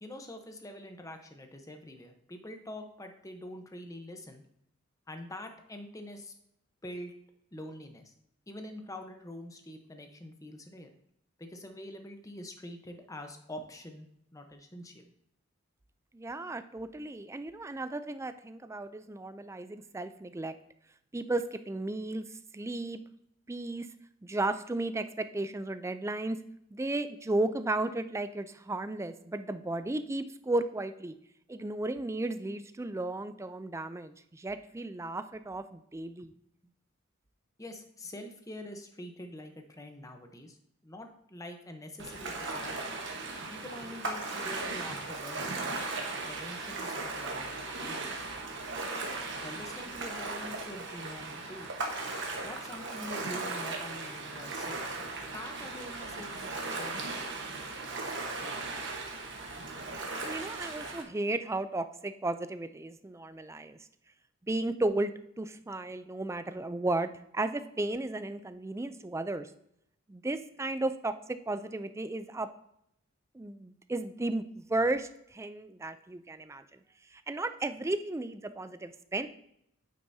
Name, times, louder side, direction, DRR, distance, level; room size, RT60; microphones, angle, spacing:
voice 1, 0.0-4.4 5.1-6.3 6.8-7.1 7.5-8.1 8.5-10.9 11.4-15.1 37.6-40.6 40.8-42.9 43.5-45.6 46.0-48.4 49.4-51.7 52.4-54.8 55.3-56.5 56.8-57.3 59.9-60.0, left 1 dB, 15° left, 5 dB, 0.9 m, -45 dB
voice 2, 16.1-20.5 21.1-22.2 22.5-23.0 23.5-23.9 24.2-26.4 26.7-31.2 31.5-36.3 60.2-63.8 64.4-65.1 65.4-69.5 70.1-71.1 71.5-72.5 73.3-76.8 77.1-79.3, right 2 dB, 15° right, 11 dB, 0.4 m, -34 dB
Ocean, 42.0-61.0, right 3 dB, 60° right, 1.2 m, -37 dB
9.0 x 7.8 x 2.7 m, 0.75 s
head